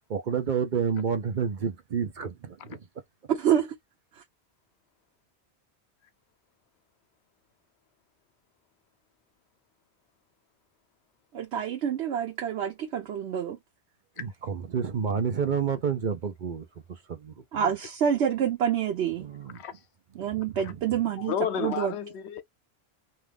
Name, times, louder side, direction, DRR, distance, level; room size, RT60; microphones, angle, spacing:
voice 1, 0.1-2.8 14.2-17.7 19.2-19.6 20.5-20.6, right 6 dB, 50° right, 0.7 m, -30 dB
voice 2, 3.3-3.7 11.3-13.6 17.5-19.3 20.2-21.3 21.6-21.9, right 8 dB, 80° right, 1.0 m, -27 dB
voice 3, 21.1-22.4, left 9 dB, 80° left, 0.9 m, -32 dB
2.7 x 2.4 x 3.3 m
omnidirectional pair, 1.1 m